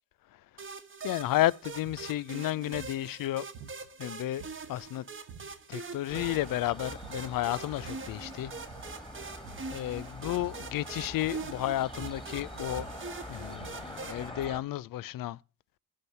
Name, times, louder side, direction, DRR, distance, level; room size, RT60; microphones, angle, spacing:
sound 1, 0.6-14.3, right 4 dB, 30° right, 1.1 m, -43 dB
voice 1, 1.0-3.5 4.0-4.4 4.7-5.0 5.7-8.5 9.7-12.9 13.3-15.4, left 14 dB, 55° left, 0.5 m, -32 dB
sound 2, 1.8-2.1 2.7-3.0 3.5-4.1 4.4-4.9 5.3-5.6 6.0-6.5 6.9-7.3 7.6-8.1 8.6-9.0 9.4-9.7 10.4-10.7 11.2-11.6 11.9-13.9, right 7 dB, 75° right, 1.1 m, -49 dB
sound 3, 6.1-14.6, equal, 10° left, 2.0 m, -44 dB
9.0 x 5.6 x 6.6 m
hypercardioid pair, 50°, 42 cm